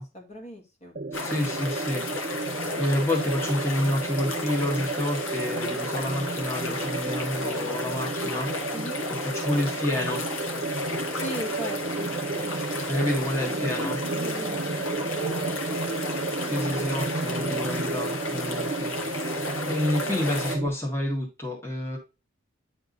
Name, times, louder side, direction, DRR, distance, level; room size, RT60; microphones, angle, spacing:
voice 1, 0.0-1.0 8.7-9.1 11.1-12.1 13.8-15.6, right 1 dB, 35° left, 1 dB, 1.9 m, -38 dB
sound 1, 1.0-20.7, right 3 dB, 40° right, 0.5 m, -32 dB
sound 2, 1.1-20.6, left 3 dB, 85° left, 1.8 m, -34 dB
voice 2, 1.1-2.3 2.8-8.7 9.1-10.2 12.9-14.0 16.4-19.4 19.7-22.0, left 1 dB, 10° left, -4 dB, 1.7 m, -29 dB
9.7 x 3.6 x 4.0 m, 0.29 s
head